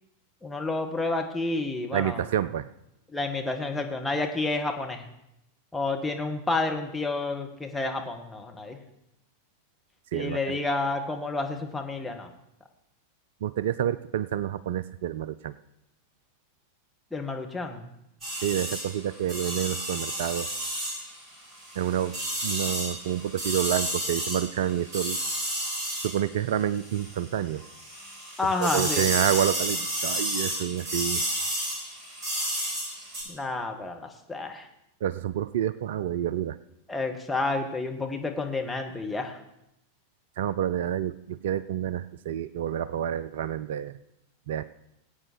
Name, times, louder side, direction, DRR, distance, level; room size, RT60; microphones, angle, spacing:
voice 1, 0.4-2.2 3.1-5.1 5.7-8.8 10.1-12.3 17.1-17.9 28.4-29.1 33.3-34.7 36.9-39.4, left 3 dB, 5° left, 2 dB, 1.8 m, -30 dB
voice 2, 1.9-2.7 10.1-10.6 13.4-15.5 18.4-20.5 21.8-22.2 22.4-25.2 26.0-27.6 28.6-31.2 35.0-36.6 40.4-44.0 44.5-44.6, right 10 dB, 55° right, 17 dB, 0.4 m, -28 dB
sound 1, 18.2-27.3 27.6-33.2, right 1 dB, 25° right, 5.9 m, -32 dB
20.0 x 8.7 x 4.7 m, 0.83 s
figure-of-eight pair, 90°, 0 cm